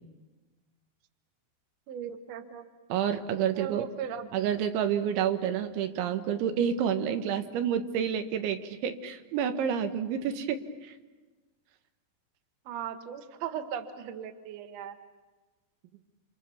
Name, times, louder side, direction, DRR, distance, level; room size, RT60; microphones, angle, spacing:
voice 1, 1.9-2.6 3.6-4.3 12.7-15.0, right 8 dB, 60° right, 8 dB, 1.8 m, -38 dB
voice 2, 2.9-3.9 4.3-11.0, right 8 dB, 90° right, 8 dB, 3.8 m, -29 dB
28.5 x 27.5 x 7.0 m, 1.3 s
omnidirectional pair, 5.2 m